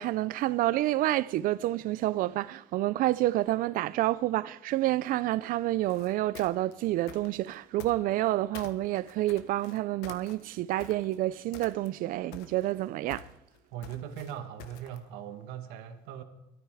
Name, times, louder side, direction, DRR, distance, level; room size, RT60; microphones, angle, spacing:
voice 1, 0.0-13.3, right 15 dB, 60° right, 0.5 m, -29 dB
sound 1, 5.8-8.3 8.5-11.2 11.5-12.1 12.3-15.1, left 8 dB, 90° left, 1.3 m, -48 dB
voice 2, 13.7-16.2, right 10 dB, 90° right, 1.6 m, -40 dB
20.5 x 13.5 x 4.9 m
cardioid pair, 145°, 16 cm